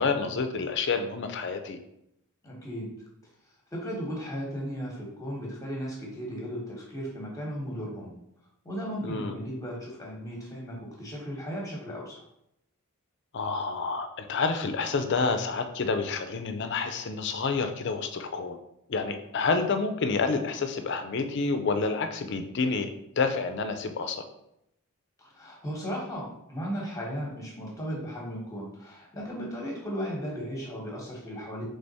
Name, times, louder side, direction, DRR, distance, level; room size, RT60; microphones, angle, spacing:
voice 1, 0.0-1.8 9.0-9.4 13.3-18.6 18.9-22.9 23.2-24.2, left 4 dB, 50° left, 8 dB, 0.4 m, -28 dB
voice 2, 2.4-2.9 3.7-8.1 8.6-12.2 25.2-31.7, equal, 15° left, -3 dB, 1.0 m, -36 dB
3.4 x 3.4 x 4.1 m, 0.80 s
head